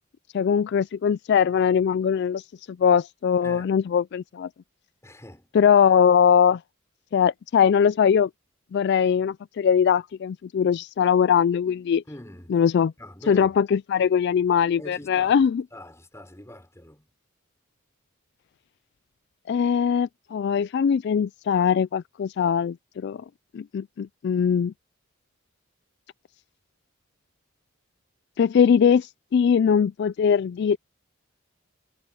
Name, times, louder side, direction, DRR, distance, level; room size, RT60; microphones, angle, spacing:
voice 1, 0.3-4.5 5.5-6.6 7.1-8.3 8.7-12.0 12.5-12.9 13.3-15.6 19.5-23.2 23.5-24.7 28.4-30.8, left 7 dB, 55° left, 0.3 m, -21 dB
voice 2, 3.4-3.8 5.0-5.5 12.1-12.6 13.0-13.6 14.8-15.4 15.7-17.1, left 1 dB, 15° left, 5.8 m, -43 dB
head